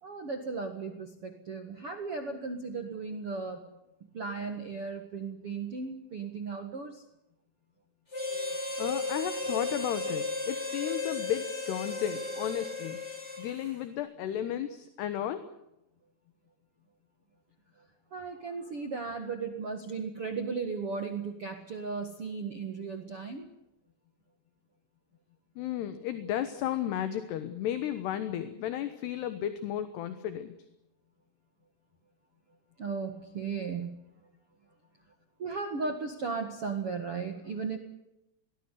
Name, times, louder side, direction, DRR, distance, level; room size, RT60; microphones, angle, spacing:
voice 1, 0.0-3.7 4.1-7.0 17.7-17.9 18.1-23.5 32.8-34.0 35.4-37.8, right 4 dB, 60° right, 6 dB, 1.5 m, -36 dB
Harmonica, 8.1-13.8, left 3 dB, 15° left, 5.1 m, -35 dB
voice 2, 8.8-13.0 13.4-15.4 25.6-30.5, left 11 dB, 70° left, 10 dB, 3.1 m, -33 dB
22.0 x 19.5 x 8.3 m, 0.86 s
omnidirectional pair, 5.4 m